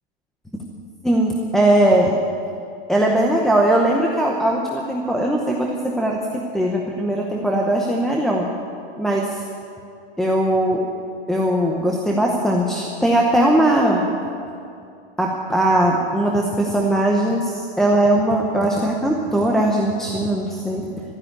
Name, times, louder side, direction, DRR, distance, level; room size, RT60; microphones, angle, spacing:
voice 1, 1.0-2.1 2.9-8.5 9.0-9.4 10.2-10.8 11.3-14.1 15.2-20.8, right 1 dB, ahead, -2 dB, 0.8 m, -19 dB
13.0 x 11.5 x 9.9 m, 2.5 s
supercardioid pair, 155°, 31 cm